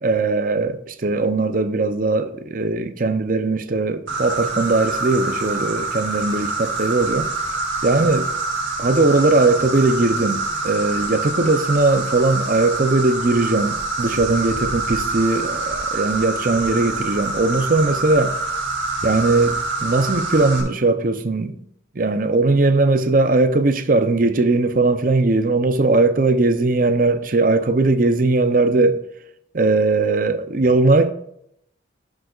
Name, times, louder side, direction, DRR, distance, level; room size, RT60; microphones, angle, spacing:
voice 1, 0.0-7.3 7.8-8.3 8.8-18.4 19.0-21.6 22.0-29.0 29.5-31.1, right 3 dB, 45° right, 0.6 m, -19 dB
Insect, 4.1-20.6, right 3 dB, 80° right, 1.9 m, -26 dB
11.5 x 6.4 x 2.4 m
head